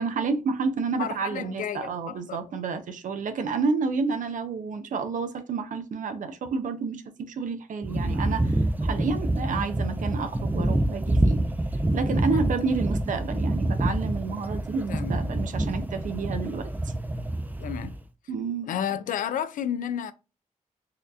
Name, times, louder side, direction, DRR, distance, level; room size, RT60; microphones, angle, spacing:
voice 1, 0.0-11.4 11.9-16.9 18.3-18.7, right 4 dB, 75° right, 0.6 m, -30 dB
voice 2, 1.0-2.4 12.3-12.8 14.9-15.1 17.6-18.0 18.7-20.1, left 9 dB, 80° left, 0.4 m, -32 dB
sound 1, 7.8-18.0, right 1 dB, 15° right, 0.4 m, -27 dB
4.2 x 2.7 x 2.5 m
cardioid pair, 70°, 14 cm